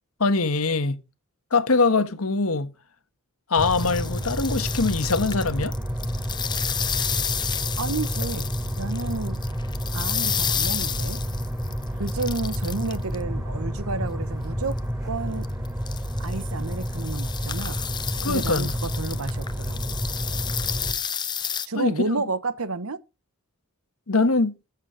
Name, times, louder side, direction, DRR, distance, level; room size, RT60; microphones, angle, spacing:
voice 1, 0.2-1.0 1.5-2.7 3.5-5.7 18.2-18.7 21.4-21.9 24.1-24.6, left 3 dB, 75° left, 1.3 m, -23 dB
sound 1, 3.5-13.2 14.7-14.8 15.4-21.7, left 8 dB, 20° left, 0.6 m, -31 dB
sound 2, 3.6-20.9, equal, 15° right, 5.2 m, -30 dB
voice 2, 7.7-9.4 9.9-11.2 12.0-14.8 15.0-15.5 16.2-17.8 18.3-20.1 21.7-23.0, right 3 dB, 80° right, 1.1 m, -31 dB
14.0 x 7.4 x 5.1 m
head